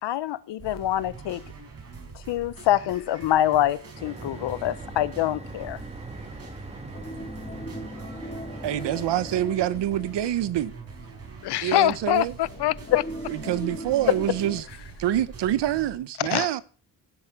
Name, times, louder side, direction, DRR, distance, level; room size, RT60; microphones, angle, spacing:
voice 1, 0.0-1.4 2.3-5.8 14.1-14.2, left 13 dB, 85° left, 1.0 m, -25 dB
sound 1, 0.6-15.9, right 4 dB, 35° right, 5.2 m, -44 dB
sound 2, 4.0-9.4, right 2 dB, 15° right, 1.6 m, -41 dB
sound 3, 6.9-11.3 11.7-11.8 12.5-14.6, equal, 25° left, 2.9 m, -39 dB
voice 2, 8.6-10.7 11.6-12.4 13.3-14.6 15.0-16.6, right 12 dB, 80° right, 1.1 m, -26 dB
voice 3, 11.4-13.0 16.3-16.6, left 15 dB, 70° left, 0.6 m, -24 dB
16.5 x 8.3 x 5.9 m
wide cardioid pair, 150°, 41 cm